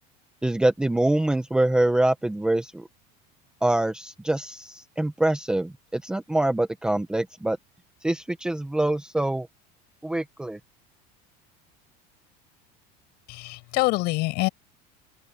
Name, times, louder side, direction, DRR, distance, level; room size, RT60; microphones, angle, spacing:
voice 1, 0.4-2.8 3.6-7.6 8.0-9.5 10.0-10.6, right 1 dB, 5° right, 0.9 m, -25 dB
voice 2, 13.3-14.5, left 22 dB, 55° left, 7.0 m, -25 dB
open air
cardioid pair, 170°, 20 cm